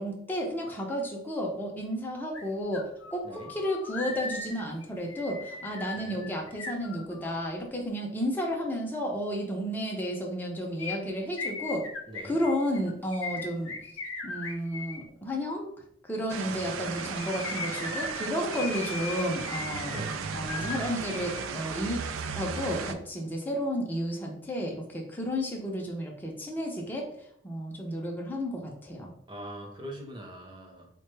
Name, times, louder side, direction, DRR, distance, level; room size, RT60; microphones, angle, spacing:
voice 1, 0.0-11.9 12.2-13.7 14.2-15.7 16.0-19.9 20.3-22.0 22.3-27.1 27.4-29.1, equal, 10° left, -1 dB, 0.6 m, -32 dB
sound 1, 2.3-2.4 2.7-7.5 10.8-15.0 16.8-21.5 21.7-21.8, left 4 dB, 75° left, 0.7 m, -38 dB
sound 2, 16.3-22.9, right 5 dB, 80° right, 0.4 m, -35 dB
voice 2, 19.8-20.2 29.3-30.9, right 1 dB, 25° right, 0 dB, 0.8 m, -42 dB
4.4 x 2.2 x 3.2 m, 0.69 s
head